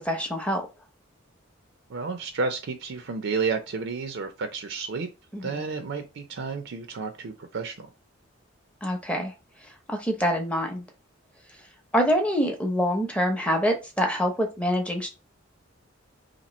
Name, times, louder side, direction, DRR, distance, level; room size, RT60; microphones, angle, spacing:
voice 1, 0.0-0.6 5.3-5.6 8.8-9.3 9.9-10.8 11.9-15.1, equal, 5° left, 0.7 m, -25 dB
voice 2, 1.9-5.1 5.4-7.9, right 4 dB, 60° right, 0.5 m, -31 dB
2.9 x 2.6 x 4.1 m
head